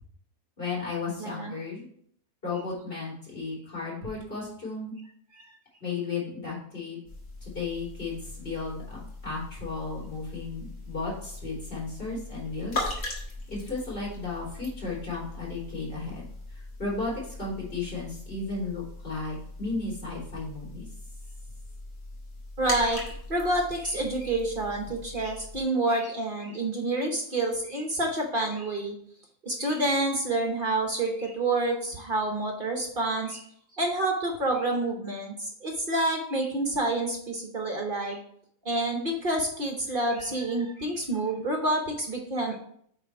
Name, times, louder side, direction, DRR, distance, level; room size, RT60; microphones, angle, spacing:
voice 1, 0.6-1.9 2.4-4.9 5.8-7.0 7.4-12.9 13.5-16.2 16.5-20.9, left 3 dB, 40° left, -7 dB, 3.7 m, -34 dB
voice 2, 1.2-1.5 22.6-28.9 29.4-33.4 33.8-38.2 38.6-42.6, right 2 dB, 40° right, 1 dB, 1.1 m, -28 dB
sound 1, 7.1-25.6, left 2 dB, 55° left, 2.0 m, -40 dB
8.5 x 3.4 x 4.6 m, 0.65 s
omnidirectional pair, 1.5 m